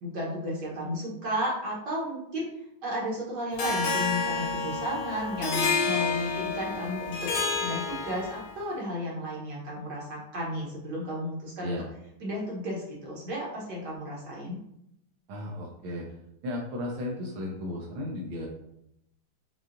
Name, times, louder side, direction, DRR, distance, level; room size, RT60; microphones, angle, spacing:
voice 1, 0.0-2.5 2.8-7.3 7.6-11.8 12.2-14.6, equal, 60° right, -5 dB, 1.4 m, -33 dB
Harp, 3.6-8.6, left 4 dB, 80° left, 1.5 m, -29 dB
voice 2, 15.3-16.1 16.4-18.5, left 1 dB, 75° right, -2 dB, 1.4 m, -35 dB
5.6 x 2.3 x 2.5 m, 0.78 s
omnidirectional pair, 2.3 m